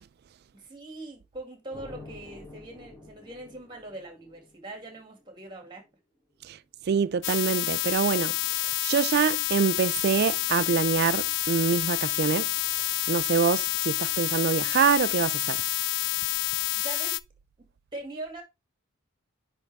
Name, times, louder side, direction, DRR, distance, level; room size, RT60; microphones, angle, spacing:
voice 1, 0.5-5.8 16.7-17.2 17.6-18.4, right 2 dB, 20° right, 2.2 m, -42 dB
sound 1, 1.7-5.4, left 2 dB, 10° left, 2.3 m, -48 dB
voice 2, 6.9-12.5 12.8-15.6, right 6 dB, 50° right, 0.3 m, -25 dB
sound 2, 7.2-17.2, left 16 dB, 55° left, 0.4 m, -28 dB
9.8 x 3.6 x 3.4 m
head